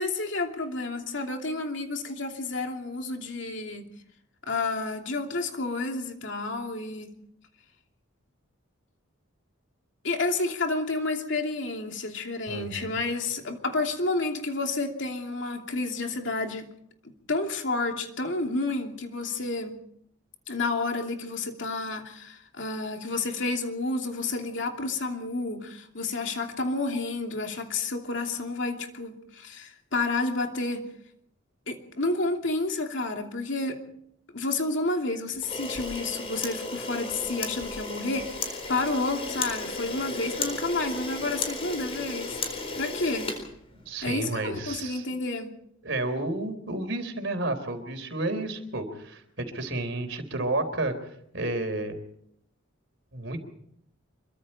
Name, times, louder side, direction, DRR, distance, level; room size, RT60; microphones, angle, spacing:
voice 1, 0.0-3.9 4.5-7.1 10.0-16.7 17.3-19.8 20.5-30.9 31.7-33.8 34.3-42.4 42.7-43.3 44.0-45.5, left 3 dB, 60° left, 2.9 m, -30 dB
voice 2, 12.5-13.0 43.7-45.0 45.8-50.9 51.3-52.0 53.1-53.4, right 2 dB, 60° right, 3.8 m, -31 dB
Camera, 35.4-44.1, left 3 dB, 30° left, 4.4 m, -34 dB
26.5 x 23.5 x 4.4 m
head